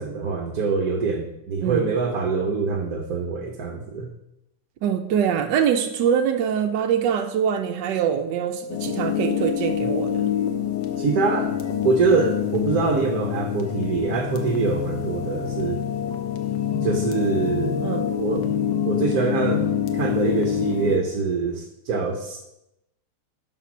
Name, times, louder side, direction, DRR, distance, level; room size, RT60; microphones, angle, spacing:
voice 1, 0.0-4.1 11.0-11.5 11.8-15.8 16.8-17.8 18.1-18.5 18.8-19.7 19.9-22.4, right 4 dB, 65° right, 2 dB, 1.4 m, -24 dB
voice 2, 4.8-10.3 17.8-18.0, right 8 dB, 85° right, 6 dB, 1.3 m, -24 dB
sound 1, 8.7-21.0, left 9 dB, 85° left, 1.6 m, -26 dB
10.0 x 4.4 x 6.1 m, 0.85 s
omnidirectional pair, 1.8 m